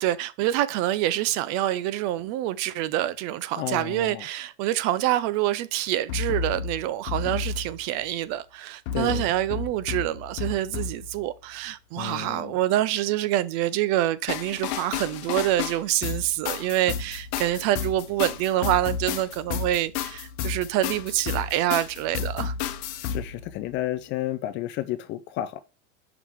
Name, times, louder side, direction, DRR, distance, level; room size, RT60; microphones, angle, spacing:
voice 1, 0.0-22.5, right 13 dB, 45° right, 0.6 m, -26 dB
voice 2, 3.6-4.3 8.9-9.3 12.0-12.5 23.1-25.6, left 13 dB, 30° left, 0.4 m, -31 dB
sound 1, 6.1-8.1 8.9-11.3 14.3-23.8, left 7 dB, 60° left, 0.9 m, -32 dB
5.9 x 3.6 x 4.6 m
supercardioid pair, 130°, 37 cm